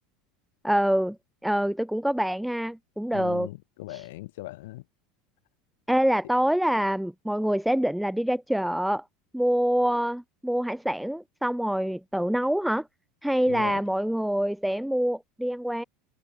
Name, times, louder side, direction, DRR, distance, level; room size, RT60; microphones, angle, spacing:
voice 1, 0.6-1.2 1.4-3.5 3.9-4.1 5.9-9.0 9.3-12.8 13.2-15.8, equal, ahead, 1.4 m, -26 dB
voice 2, 3.1-4.8 13.5-13.8, left 19 dB, 75° left, 3.4 m, -39 dB
supercardioid pair, 175°, 0 cm